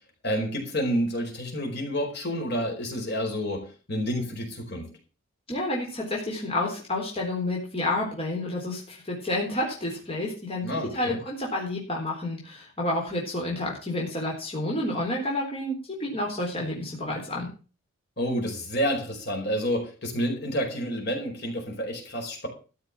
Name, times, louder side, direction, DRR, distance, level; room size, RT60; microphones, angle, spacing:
voice 1, 0.2-4.9 10.6-11.2 18.2-22.5, equal, 50° left, 2 dB, 4.7 m, -29 dB
voice 2, 5.5-17.5, left 1 dB, 25° left, -3 dB, 3.9 m, -30 dB
13.5 x 6.7 x 7.4 m, 0.36 s
head